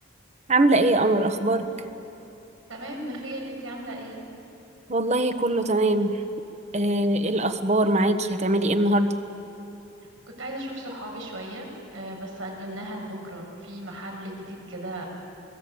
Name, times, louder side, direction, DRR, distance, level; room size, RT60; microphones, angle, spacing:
voice 1, 0.5-1.7 4.9-6.2 6.7-9.1, right 1 dB, 35° right, 9 dB, 1.2 m, -22 dB
voice 2, 2.7-4.2 10.4-15.1, right 1 dB, 75° right, 0 dB, 6.9 m, -36 dB
27.5 x 20.5 x 8.7 m, 3.0 s
head